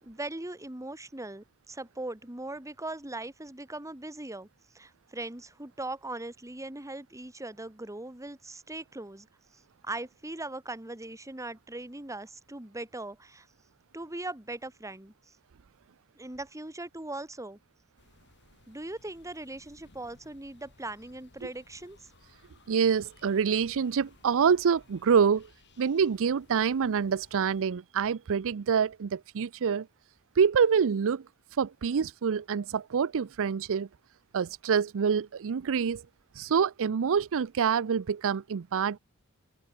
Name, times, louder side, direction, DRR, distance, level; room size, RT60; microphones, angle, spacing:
voice 1, 0.0-4.5 4.7-9.3 9.8-13.5 13.9-15.1 16.2-17.6 18.7-22.1, right 2 dB, 15° right, 2.0 m, -40 dB
sound 1, 18.0-27.6, left 2 dB, 55° left, 2.8 m, -60 dB
voice 2, 22.7-25.5 25.8-29.9 30.4-31.2 31.6-33.9 34.3-36.0 36.4-39.0, right 6 dB, 60° right, 0.5 m, -26 dB
head